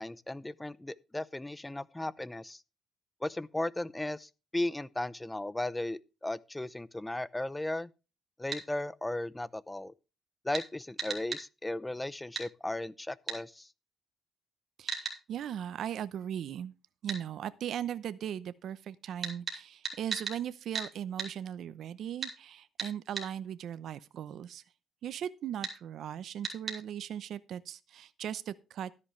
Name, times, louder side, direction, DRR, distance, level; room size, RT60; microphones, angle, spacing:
voice 1, 0.0-2.6 3.2-7.9 8.4-9.9 10.4-13.7, left 1 dB, 10° left, 0.7 m, -36 dB
sound 1, 8.5-8.6 10.5-10.7 11.0-11.4 12.3-12.5 13.3-13.4 14.9-15.2 17.1-17.2 19.2-20.4 20.7-20.9 21.2-21.3 22.2-22.3 22.8-23.3 25.6-25.8 26.4-26.8, right 5 dB, 40° right, 4.5 m, -36 dB
voice 2, 14.8-16.7 17.0-24.6 25.0-28.9, right 10 dB, 70° right, 0.7 m, -38 dB
13.0 x 10.5 x 3.2 m
cardioid pair, 90°, 0 cm